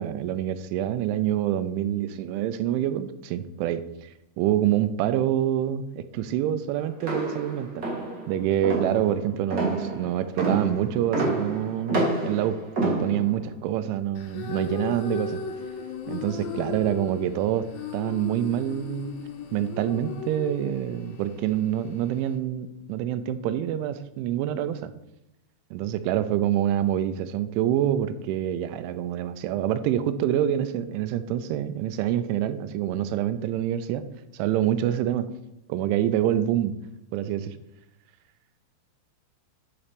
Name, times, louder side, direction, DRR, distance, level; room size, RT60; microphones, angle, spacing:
voice 1, 0.0-4.1 4.4-7.9 8.3-15.4 16.1-17.7 17.9-19.2 19.5-24.9 25.7-34.1 34.3-35.3 35.7-36.8 37.1-37.6, right 11 dB, 90° right, 12 dB, 3.0 m, -26 dB
sound 1, 7.0-13.5, right 2 dB, 55° right, 1.0 m, -28 dB
sound 2, 14.2-22.4, left 7 dB, 80° left, 3.1 m, -37 dB
9.6 x 4.2 x 5.2 m, 0.85 s
omnidirectional pair, 5.4 m